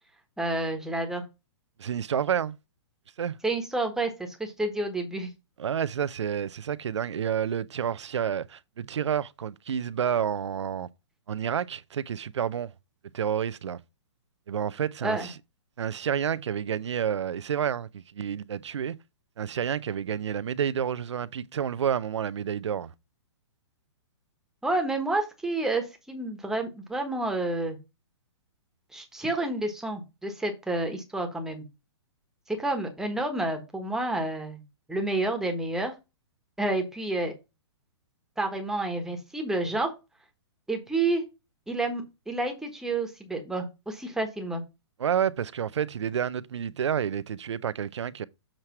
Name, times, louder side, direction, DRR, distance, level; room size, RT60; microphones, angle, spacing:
voice 1, 0.4-1.2 3.4-5.3 15.0-15.3 24.6-27.8 28.9-31.6 32.5-34.6 34.9-35.9 36.6-37.3 38.4-39.9 40.7-41.2 41.7-44.6, right 2 dB, 5° right, 1.2 m, -29 dB
voice 2, 1.8-2.6 3.2-3.4 5.6-10.9 11.3-12.7 13.1-13.8 14.5-15.3 15.8-19.0 19.4-22.9 45.0-48.2, right 8 dB, 90° right, 0.5 m, -29 dB
7.4 x 3.2 x 5.8 m
hypercardioid pair, 150°, 14 cm